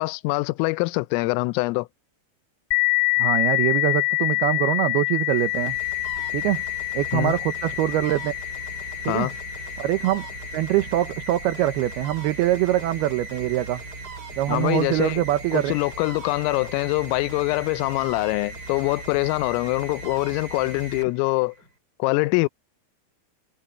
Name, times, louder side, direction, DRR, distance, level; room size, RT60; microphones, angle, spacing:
voice 1, 0.0-1.9 7.1-7.3 9.1-9.3 14.5-15.2 15.5-21.5 22.0-22.5, left 24 dB, 90° left, 3.3 m, -24 dB
sound 1, 2.7-11.9, left 26 dB, 65° left, 2.4 m, -27 dB
voice 2, 3.2-5.8 6.3-6.6 6.9-8.3 9.1-9.3 9.8-10.3 10.5-13.8 14.4-15.7, right 14 dB, 80° right, 2.2 m, -23 dB
sound 2, 5.2-21.7, right 3 dB, 20° right, 5.3 m, -39 dB
omnidirectional pair, 5.8 m